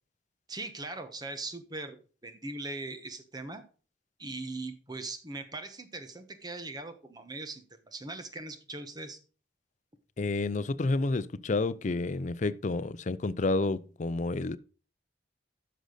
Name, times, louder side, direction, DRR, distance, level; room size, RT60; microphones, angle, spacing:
voice 1, 0.5-3.6 4.2-9.2, right 2 dB, 25° right, 1.2 m, -40 dB
voice 2, 10.2-14.6, left 3 dB, 45° left, 0.5 m, -30 dB
10.0 x 6.5 x 3.9 m
head